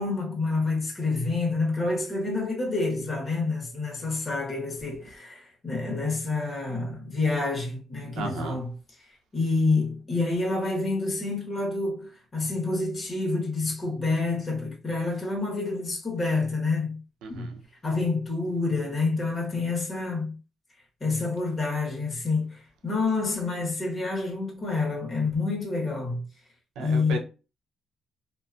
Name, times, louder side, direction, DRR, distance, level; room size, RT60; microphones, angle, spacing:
voice 1, 0.0-8.7 9.3-17.0 17.3-17.5 17.8-20.3 21.0-26.2 26.8-27.2, left 3 dB, 35° left, 1.2 m, -28 dB
voice 2, 8.2-8.6 17.2-17.6 26.8-27.2, right 3 dB, 90° right, 0.6 m, -34 dB
2.5 x 2.5 x 2.4 m
cardioid pair, 90°, 0 cm